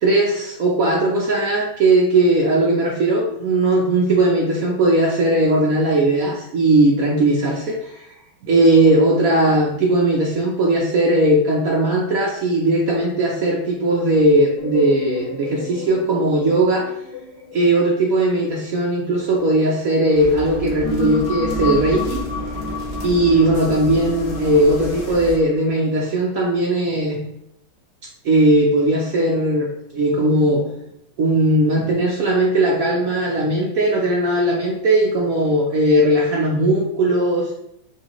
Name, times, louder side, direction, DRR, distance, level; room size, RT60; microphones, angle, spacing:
voice 1, 0.0-8.1 8.4-16.9 17.5-22.2 23.0-27.2 28.2-30.7 31.2-37.5, right 1 dB, 85° right, -2 dB, 0.7 m, -18 dB
sound 1, 14.6-19.9 20.4-25.4, left 4 dB, 85° left, 1.6 m, -32 dB
sound 2, 20.1-25.4, equal, 60° left, 0.5 m, -29 dB
5.6 x 3.2 x 3.0 m, 0.79 s
omnidirectional pair, 2.3 m